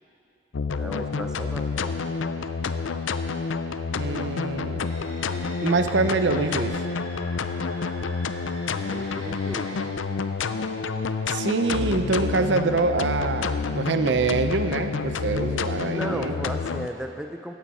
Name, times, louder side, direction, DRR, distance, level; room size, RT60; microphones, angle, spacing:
sound 1, 0.5-16.9, left 4 dB, 90° left, 0.5 m, -29 dB
voice 1, 0.8-2.0 8.7-9.9 15.9-17.5, equal, 5° right, 5 dB, 0.4 m, -35 dB
voice 2, 3.9-4.9 5.6-6.8 11.3-16.3, right 3 dB, 70° right, 9 dB, 0.6 m, -25 dB
sound 2, 4.8-9.9, right 1 dB, 85° right, 2.6 m, -44 dB
15.0 x 9.1 x 5.6 m, 2.7 s
head